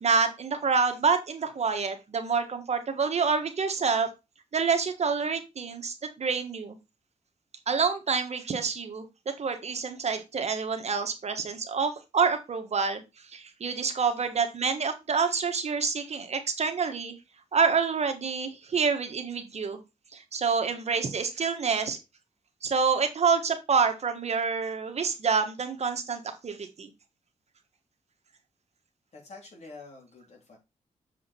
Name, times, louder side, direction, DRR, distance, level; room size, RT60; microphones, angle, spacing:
voice 1, 0.0-4.1 4.5-6.8 7.7-13.0 13.3-17.1 17.5-19.8 20.1-22.0 22.6-26.9, right 5 dB, 55° right, 6 dB, 1.4 m, -27 dB
voice 2, 29.1-30.6, left 3 dB, 55° left, 0 dB, 3.6 m, -47 dB
7.1 x 5.0 x 4.4 m, 0.25 s
cardioid pair, 95°, 13 cm